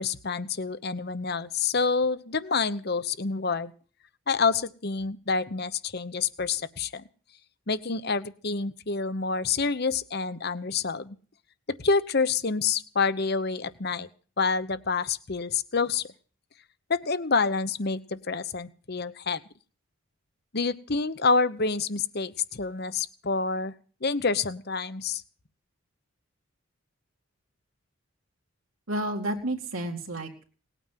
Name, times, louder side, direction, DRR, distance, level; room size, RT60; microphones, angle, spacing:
voice 1, 0.0-3.7 4.3-7.0 7.7-11.2 11.7-14.1 14.4-16.0 16.9-19.4 20.5-23.7 24.0-25.2, left 4 dB, 50° left, 14 dB, 0.9 m, -27 dB
voice 2, 28.9-30.5, right 1 dB, 75° right, 1 dB, 2.4 m, -31 dB
19.0 x 9.1 x 7.5 m, 0.41 s
head